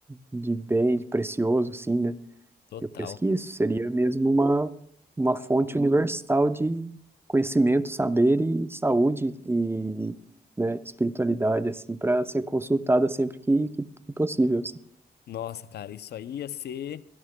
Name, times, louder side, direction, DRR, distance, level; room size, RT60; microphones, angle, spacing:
voice 1, 0.3-2.2 3.2-4.7 5.2-7.0 7.3-10.2 10.6-13.9 14.2-14.7, right 2 dB, 15° right, 0.6 m, -24 dB
voice 2, 2.7-3.2 15.3-17.0, left 10 dB, 80° left, 0.5 m, -36 dB
22.5 x 17.0 x 2.2 m
cardioid pair, 85°, 17 cm